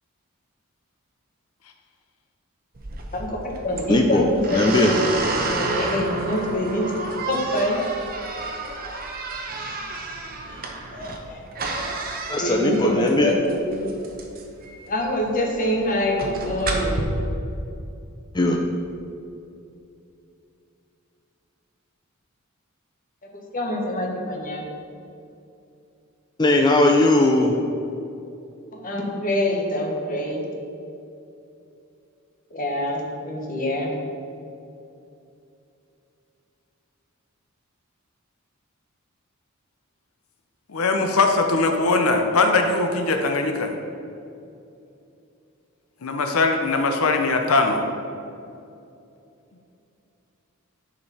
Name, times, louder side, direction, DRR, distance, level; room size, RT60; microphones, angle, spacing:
sound 1, 2.8-17.0, right 2 dB, 45° right, 0.9 m, -30 dB
voice 1, 3.1-6.9 7.3-8.0 8.4-8.8 10.5-10.6 10.9-11.6 12.4-13.9 14.9-17.1 23.3-24.6 28.7-30.4 32.5-33.9, left 1 dB, 40° left, 0 dB, 1.3 m, -26 dB
voice 2, 3.9-4.2 4.5-4.9 12.3-13.3 18.3-18.6 26.4-27.5, left 2 dB, 20° left, 1 dB, 0.5 m, -19 dB
voice 3, 40.7-43.8 46.0-47.8, left 3 dB, 90° left, 4 dB, 0.7 m, -21 dB
10.5 x 5.1 x 4.2 m, 2.7 s
head